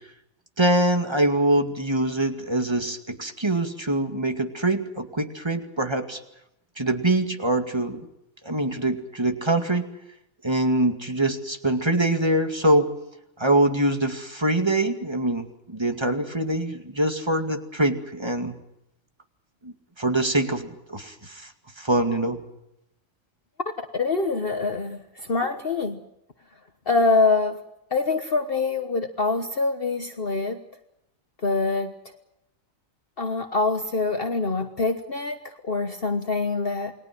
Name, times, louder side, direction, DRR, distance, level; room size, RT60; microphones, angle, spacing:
voice 1, 0.6-6.2 6.8-8.0 8.4-9.8 10.4-12.9 13.4-18.6 19.6-21.5 21.8-22.4, right 1 dB, 20° right, 6 dB, 2.2 m, -24 dB
voice 2, 23.9-25.0 25.3-26.0 26.9-27.6 27.9-30.6 31.4-31.9 33.2-35.4 35.7-36.9, left 3 dB, 45° left, 6 dB, 1.4 m, -24 dB
29.0 x 21.0 x 6.1 m, 0.85 s
omnidirectional pair, 1.4 m